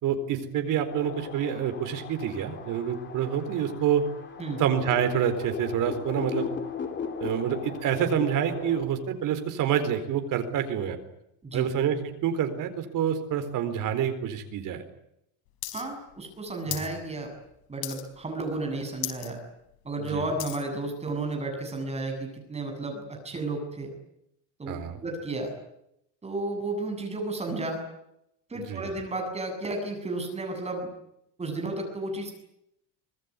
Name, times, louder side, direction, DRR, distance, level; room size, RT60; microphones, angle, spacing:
voice 1, 0.0-4.0 4.6-6.5 7.2-11.0 11.5-14.8 16.7-16.8 20.1-20.2 24.7-25.0 28.7-28.9, right 9 dB, 45° right, 8 dB, 4.2 m, -27 dB
sound 1, 0.9-8.8, left 6 dB, 25° left, 3.2 m, -37 dB
sound 2, 15.6-15.8 16.1-16.9 17.3-17.5 17.8-18.3 18.6-18.7 19.0-19.3 19.7-20.7 21.3-21.4, left 16 dB, 85° left, 4.6 m, -36 dB
voice 2, 15.7-17.3 17.7-19.4 19.8-23.9 24.6-24.7 25.0-25.5 26.2-27.8 28.5-30.9 31.4-32.3, right 2 dB, 15° right, 3 dB, 7.6 m, -32 dB
25.0 x 20.5 x 9.7 m, 0.80 s
cardioid pair, 170°, 45 cm